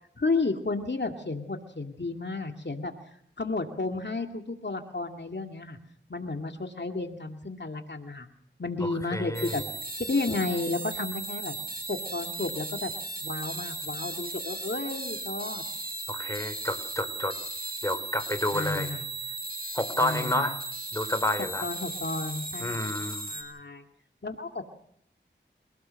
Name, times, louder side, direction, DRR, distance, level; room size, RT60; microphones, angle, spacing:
voice 1, 0.2-2.9 3.4-5.8 6.1-8.3 8.6-9.6 10.0-11.6 11.9-12.9 13.2-15.6 18.5-19.1 20.0-20.5 21.6-22.8 23.3-23.8 24.2-24.7, left 3 dB, 65° left, 4 dB, 2.2 m, -32 dB
voice 2, 8.8-9.6 16.1-17.3 17.8-18.9 19.7-20.6 20.9-21.7 22.6-23.3, left 1 dB, 15° left, 9 dB, 3.8 m, -30 dB
sound 1, 9.3-23.4, right 2 dB, 50° right, 7.0 m, -36 dB
29.5 x 18.0 x 6.5 m, 0.69 s
wide cardioid pair, 55°, 20 cm